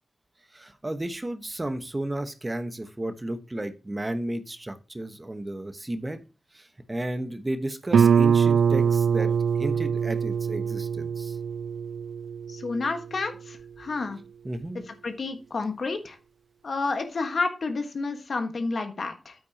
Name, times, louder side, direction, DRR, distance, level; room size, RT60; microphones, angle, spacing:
voice 1, 0.5-6.2 6.5-9.3 9.6-11.4 14.4-14.8, right 1 dB, 25° right, 9 dB, 1.1 m, -33 dB
Guitar, 7.9-13.3, right 7 dB, 85° right, 0.3 m, -23 dB
voice 2, 12.5-14.2 14.9-16.2 16.6-19.3, left 3 dB, 65° left, 6 dB, 1.5 m, -30 dB
8.8 x 8.3 x 2.9 m, 0.34 s
cardioid pair, 65°, 0 cm